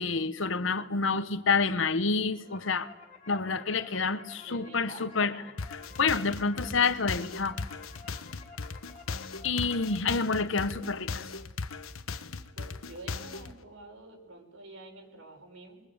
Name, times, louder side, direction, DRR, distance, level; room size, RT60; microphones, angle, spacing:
voice 1, 0.0-2.9 3.3-5.3 6.0-7.6 9.4-11.3, left 4 dB, 65° left, 12 dB, 1.2 m, -28 dB
sound 1, 2.2-10.0, left 5 dB, 35° left, 2.3 m, -52 dB
voice 2, 4.5-5.5 12.5-15.8, right 2 dB, 70° right, 2 dB, 6.1 m, -48 dB
sound 2, 5.6-13.5, left 4 dB, 85° left, 1.2 m, -38 dB
29.0 x 22.0 x 8.9 m, 1.2 s
head